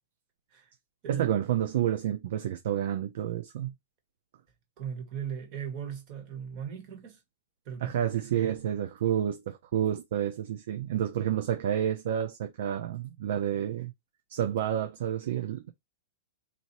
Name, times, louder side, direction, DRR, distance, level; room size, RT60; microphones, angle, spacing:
voice 1, 1.1-3.7 7.8-13.9 14.3-15.7, right 10 dB, 60° right, 0.6 m, -29 dB
voice 2, 4.8-7.2 7.6-8.5, right 8 dB, 35° right, 1.6 m, -38 dB
4.2 x 2.7 x 3.0 m
supercardioid pair, 165°, 0 cm